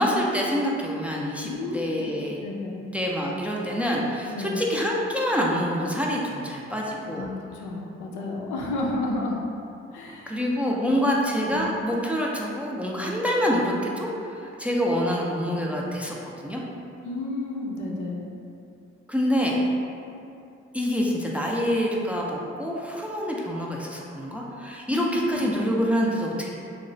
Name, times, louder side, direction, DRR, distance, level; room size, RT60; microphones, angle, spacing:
voice 1, 0.0-2.4 2.9-7.3 10.3-16.6 19.1-19.6 20.7-26.5, equal, 5° right, -3 dB, 0.3 m, -26 dB
voice 2, 1.4-2.1 2.4-2.9 4.3-4.7 7.1-9.4 9.9-10.4 10.6-11.0 11.4-11.7 17.0-18.3 24.9-25.6, left 2 dB, 80° left, -2 dB, 0.5 m, -32 dB
2.9 x 2.0 x 2.6 m, 2.6 s
supercardioid pair, 50°, 29 cm